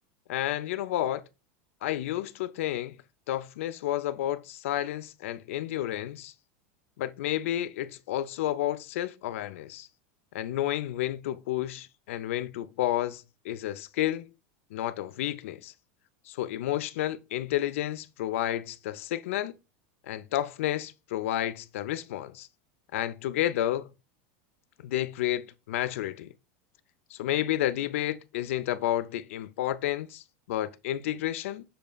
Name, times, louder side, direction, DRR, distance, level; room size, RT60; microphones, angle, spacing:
voice 1, 0.3-1.2 1.8-3.0 3.3-6.3 7.0-9.9 10.3-14.3 14.7-15.7 16.3-19.5 20.1-22.5 22.9-23.9 24.8-26.3 27.1-31.6, left 13 dB, 80° left, 0.4 m, -31 dB
6.7 x 2.5 x 2.3 m
supercardioid pair, 140°, 7 cm